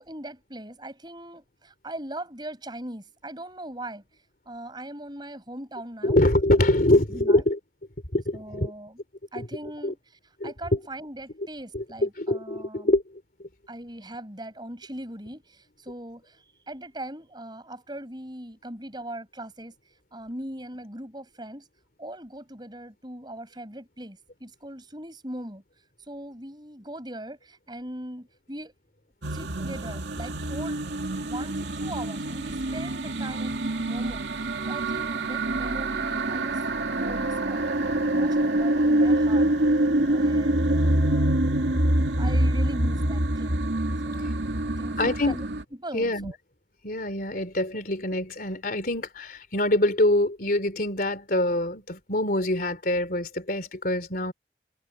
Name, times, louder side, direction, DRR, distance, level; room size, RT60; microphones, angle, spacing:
voice 1, 0.0-4.0 4.5-6.2 7.1-7.4 8.3-9.0 9.3-13.0 13.7-19.7 20.1-21.7 22.0-25.6 26.1-28.7 29.3-30.9 31.2-34.2 34.7-36.6 37.0-37.7 38.1-39.5 40.1-41.4 42.2-43.6 44.0-44.3 44.8-46.4, right 1 dB, 25° right, 6.8 m, -40 dB
voice 2, 6.0-7.6 8.1-8.7 9.4-9.5 9.8-9.9 10.4-10.5 11.7-13.0 45.0-45.4 45.9-46.3 46.8-54.3, left 1 dB, 50° left, 3.4 m, -24 dB
sound 1, 29.2-45.6, right 1 dB, 75° right, 2.5 m, -25 dB
head